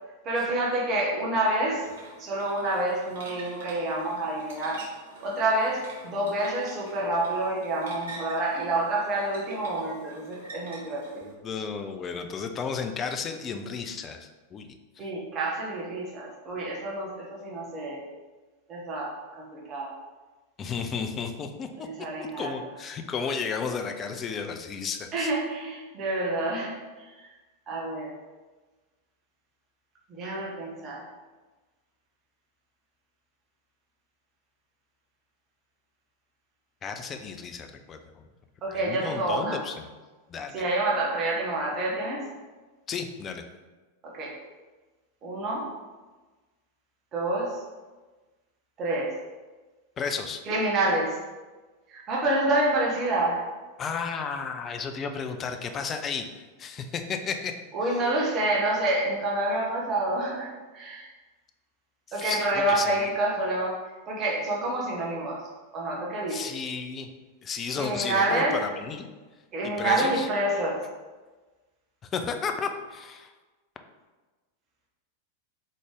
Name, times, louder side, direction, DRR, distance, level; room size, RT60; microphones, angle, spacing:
voice 1, 0.2-1.8 2.2-4.8 5.2-11.2 15.0-18.1 18.7-19.9 21.8-22.5 25.1-27.1 27.7-28.1 30.1-31.0 38.6-39.6 40.5-42.3 44.0-44.4 45.2-45.7 47.1-47.6 48.8-49.2 50.5-51.2 51.9-53.5 57.7-61.1 62.1-65.5 65.7-66.5 67.7-68.6 69.5-70.9, right 2 dB, 30° right, -3 dB, 1.0 m, -28 dB
sound 1, 1.8-11.3, right 2 dB, 60° right, 1.1 m, -47 dB
voice 2, 11.2-15.1 20.6-21.7 22.2-25.3 36.8-38.3 38.7-39.9 40.3-40.6 42.9-43.4 50.0-50.4 53.8-56.3 56.6-57.5 57.8-58.0 62.1-63.1 66.3-67.1 67.4-69.1 69.6-70.3 72.1-73.3, left 5 dB, 25° left, 6 dB, 0.4 m, -33 dB
3.8 x 3.1 x 3.6 m, 1.3 s
figure-of-eight pair, 90°, 0 cm